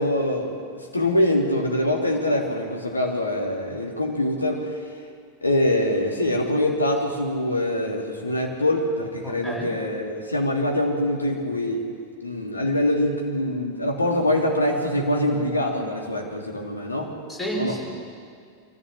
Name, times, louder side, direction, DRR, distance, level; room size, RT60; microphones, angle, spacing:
voice 1, 0.0-4.8 5.4-11.9 12.2-17.1 17.6-17.8, left 1 dB, 80° left, 0 dB, 3.2 m, -24 dB
voice 2, 9.2-9.7 17.3-17.8, equal, 15° left, -2 dB, 6.0 m, -30 dB
24.0 x 15.0 x 7.9 m, 2.2 s
figure-of-eight pair, 90°, 0 cm